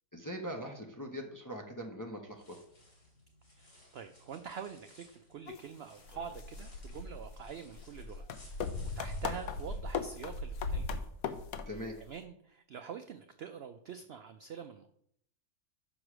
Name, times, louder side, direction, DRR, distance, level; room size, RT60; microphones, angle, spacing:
voice 1, 0.1-2.6 11.7-12.0, equal, 20° left, 2 dB, 0.6 m, -41 dB
sound 1, 2.3-9.8, left 1 dB, 55° left, 2.8 m, -61 dB
voice 2, 3.5-8.3 9.0-11.0 12.1-14.9, right 7 dB, 70° right, 7 dB, 0.6 m, -45 dB
sound 2, 5.5-5.6 6.1-12.0, left 4 dB, 70° left, 1.1 m, -38 dB
6.2 x 4.9 x 6.0 m, 0.68 s
omnidirectional pair, 1.6 m